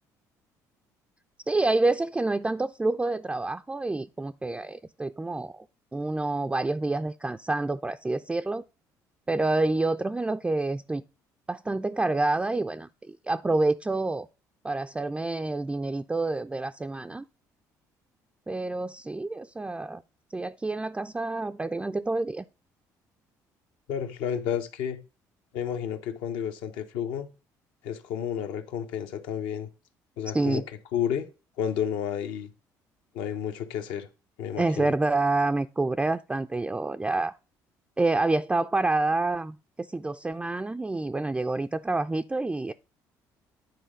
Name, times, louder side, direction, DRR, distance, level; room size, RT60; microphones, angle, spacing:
voice 1, 1.5-5.7 5.9-8.6 9.3-11.0 11.5-14.3 14.6-17.2 18.5-20.0 20.3-22.4 30.3-30.6 34.6-37.4 38.0-42.7, right 2 dB, 10° right, 0.3 m, -28 dB
voice 2, 23.9-25.0 25.5-27.3 27.8-29.7 30.2-30.6 30.9-31.2 31.6-32.5 33.1-34.1 34.4-34.9, left 9 dB, 75° left, 0.9 m, -31 dB
9.5 x 4.1 x 5.1 m
hypercardioid pair, 65°, 9 cm